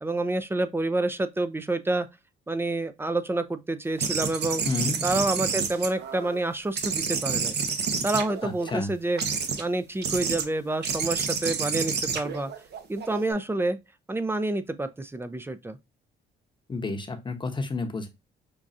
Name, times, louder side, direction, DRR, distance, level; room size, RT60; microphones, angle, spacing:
voice 1, 0.0-2.1 2.5-4.6 5.0-7.6 8.0-9.2 9.6-12.5 12.9-13.8 14.1-15.8, right 2 dB, 10° right, 0.4 m, -28 dB
sound 1, 4.0-6.4 6.8-8.7 9.2-9.6 10.0-10.4 10.8-13.3, right 6 dB, 55° right, 0.8 m, -29 dB
voice 2, 4.6-5.0 8.4-8.9 16.7-18.1, left 3 dB, 25° left, 0.8 m, -30 dB
5.3 x 2.3 x 2.4 m
cardioid pair, 90°, 20 cm